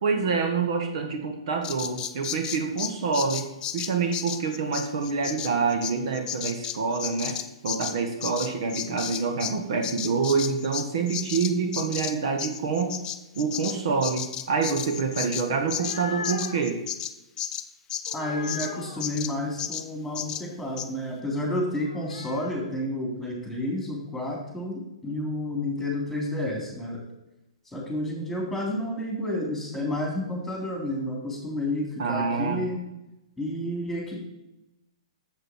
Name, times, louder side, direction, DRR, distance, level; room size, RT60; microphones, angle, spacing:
voice 1, 0.0-3.5 3.7-7.4 7.6-12.9 13.3-16.8 32.0-32.6, right 5 dB, 60° right, 5 dB, 1.4 m, -27 dB
Bird vocalization bird call bird song, 1.6-9.6 9.8-18.7 19.0-19.3 19.6-19.9 20.2-20.4 20.8-20.9, left 10 dB, 25° left, 0.5 m, -33 dB
sound 1, 15.5-16.7 18.1-19.0 21.8-22.6, left 5 dB, 70° left, 0.8 m, -39 dB
voice 2, 18.1-27.0 27.7-32.8 33.4-34.2, left 1 dB, 5° left, -1 dB, 3.5 m, -30 dB
8.0 x 7.4 x 4.6 m, 0.95 s
hypercardioid pair, 125°, 3 cm